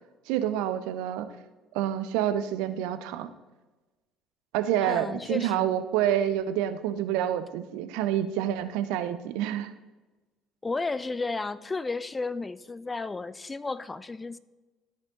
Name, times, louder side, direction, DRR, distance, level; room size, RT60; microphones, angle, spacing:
voice 1, 0.3-1.3 1.7-3.3 4.5-9.7, right 11 dB, 60° right, 11 dB, 0.5 m, -28 dB
voice 2, 4.8-5.7 10.6-14.4, left 3 dB, 20° left, 16 dB, 0.3 m, -33 dB
13.5 x 5.0 x 2.9 m, 1.2 s
figure-of-eight pair, 55°, 0 cm